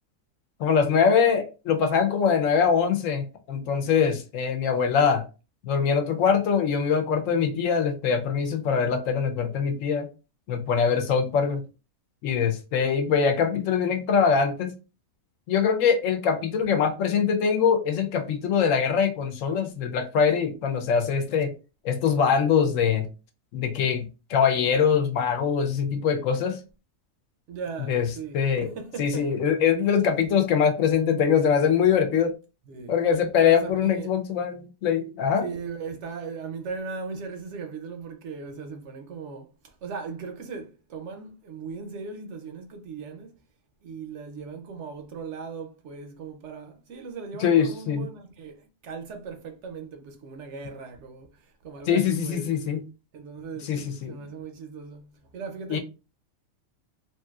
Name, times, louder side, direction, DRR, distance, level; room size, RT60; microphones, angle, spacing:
voice 1, 0.6-5.3 5.6-10.1 10.5-11.6 12.2-14.7 15.5-21.5 21.8-23.1 23.5-26.6 27.9-28.1 28.3-28.7 29.0-32.3 32.9-35.4 47.4-48.1 51.9-52.8 53.6-54.1 55.7-55.8, left 7 dB, 75° left, 0.9 m, -23 dB
voice 2, 27.5-29.3 32.7-32.9 33.4-34.1 35.4-43.3 43.8-52.5 53.1-53.8 54.1-55.8, right 5 dB, 65° right, 0.8 m, -38 dB
3.1 x 2.6 x 2.3 m
omnidirectional pair, 1.4 m